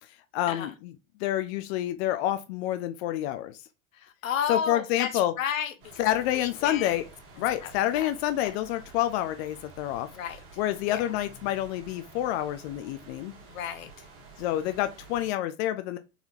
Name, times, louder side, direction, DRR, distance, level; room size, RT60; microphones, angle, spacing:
voice 1, 0.0-0.9 1.2-3.6 4.5-5.3 6.0-7.1 7.4-10.1 10.6-13.3 14.4-16.0, left 13 dB, 55° left, 0.5 m, -28 dB
voice 2, 3.9-5.1 5.4-5.9 6.3-6.9 7.6-8.1 8.4-8.5 10.1-10.4 10.9-11.1 13.4-14.1, left 8 dB, 85° left, 0.8 m, -33 dB
sound 1, 5.8-15.3, right 3 dB, 35° right, 1.7 m, -50 dB
4.0 x 2.7 x 2.7 m
hypercardioid pair, 100°, 39 cm